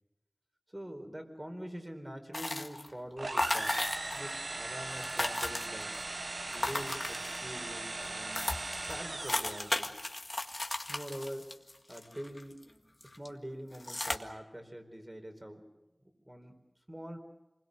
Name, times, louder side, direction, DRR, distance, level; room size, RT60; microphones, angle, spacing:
voice 1, 0.7-3.8 4.1-5.9 6.5-8.5 8.9-9.9 10.9-11.5 11.9-12.9 13.2-15.6 16.3-16.6 16.9-17.2, equal, 25° right, 4 dB, 4.5 m, -44 dB
sound 1, 2.3-2.9 3.4-4.3 4.6-4.7 4.9-6.0 6.5-7.6 8.0-8.1 8.3-12.6 13.0-13.3 13.7-14.2, left 2 dB, 55° left, 1.8 m, -35 dB
sound 2, 3.2-9.9, right 2 dB, 80° right, 1.0 m, -39 dB
27.5 x 21.0 x 6.7 m, 1.0 s
wide cardioid pair, 45°, 0 cm